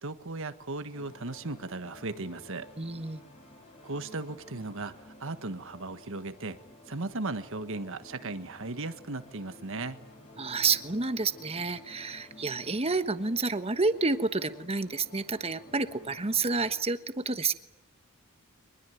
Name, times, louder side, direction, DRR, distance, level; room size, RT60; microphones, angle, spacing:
voice 1, 0.0-2.7 3.8-6.6 6.9-10.0, right 2 dB, 65° right, 10 dB, 1.5 m, -37 dB
sound 1, 0.9-16.7, left 1 dB, 30° left, 5.3 m, -53 dB
voice 2, 2.8-3.2 10.4-17.5, right 4 dB, 30° right, 11 dB, 1.3 m, -29 dB
24.0 x 21.0 x 9.2 m, 0.83 s
head